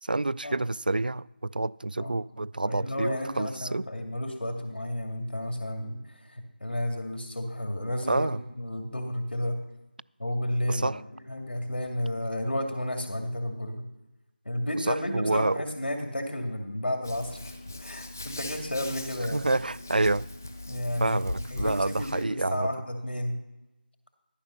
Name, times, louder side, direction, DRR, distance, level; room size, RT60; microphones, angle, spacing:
voice 1, 0.0-3.9 8.1-8.4 10.7-11.0 14.8-15.6 19.3-20.3 21.0-22.7, right 2 dB, 55° right, 0.3 m, -28 dB
voice 2, 2.7-8.3 8.6-9.6 10.2-13.8 14.4-17.5 17.8-19.5 20.7-21.2 21.5-23.3, left 1 dB, 85° left, 2.3 m, -32 dB
Hands, 17.0-22.3, left 2 dB, 15° left, 0.5 m, -40 dB
13.0 x 5.9 x 6.5 m
figure-of-eight pair, 175°, 6 cm